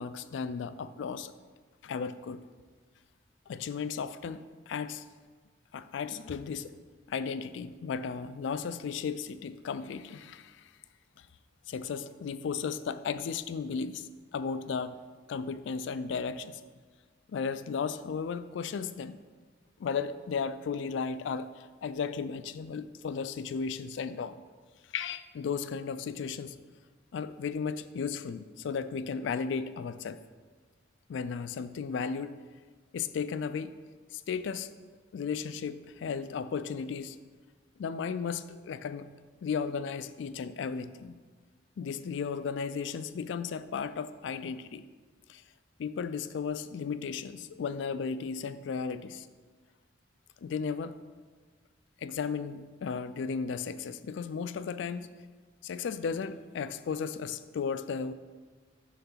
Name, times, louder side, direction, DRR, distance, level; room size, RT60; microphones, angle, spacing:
voice 1, 0.0-1.3 1.8-2.4 3.5-5.0 5.7-6.7 7.1-10.7 11.2-11.3 11.7-15.0 15.3-16.6 17.3-19.2 19.8-24.4 24.9-26.6 27.1-30.2 31.1-32.3 32.9-33.7 34.1-34.7 35.1-37.2 37.8-39.1 39.4-41.2 41.8-44.8 45.3-45.4 45.8-49.3 50.4-50.9 52.0-55.2 55.6-58.1, left 6 dB, 65° left, 13 dB, 0.3 m, -35 dB
5.8 x 3.8 x 5.6 m, 1.4 s
head